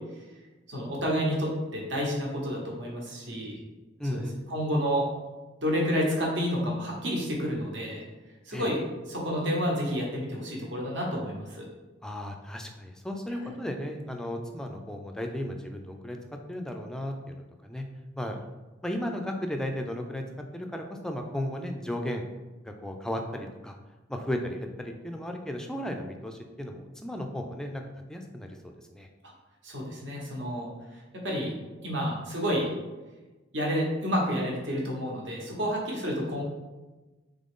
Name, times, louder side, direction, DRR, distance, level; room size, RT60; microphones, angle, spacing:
voice 1, 0.7-3.6 4.1-4.2 4.5-5.0 5.6-8.0 8.5-8.8 9.1-11.7 13.4-13.5 29.6-30.7 31.1-31.5 31.8-32.7 33.5-36.4, equal, 65° right, -2 dB, 1.1 m, -29 dB
voice 2, 4.0-4.4 8.5-8.7 12.0-16.2 16.5-17.9 18.2-18.4 18.8-20.2 20.5-22.2 22.6-23.8 24.1-27.8 28.1-29.1, left 1 dB, 5° left, 3 dB, 0.3 m, -35 dB
3.8 x 3.7 x 3.6 m, 1.2 s
head